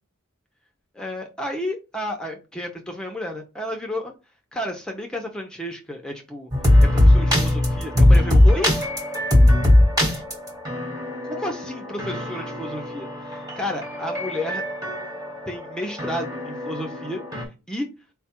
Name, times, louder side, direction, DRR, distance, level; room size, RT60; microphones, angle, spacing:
voice 1, 0.9-4.1 4.5-6.5 6.9-8.7 11.2-14.7 15.5-17.9, left 1 dB, 5° left, 2 dB, 0.5 m, -31 dB
sound 1, 6.5-17.4, left 1 dB, 20° right, 1.2 m, -20 dB
4.4 x 2.3 x 4.2 m, 0.29 s
head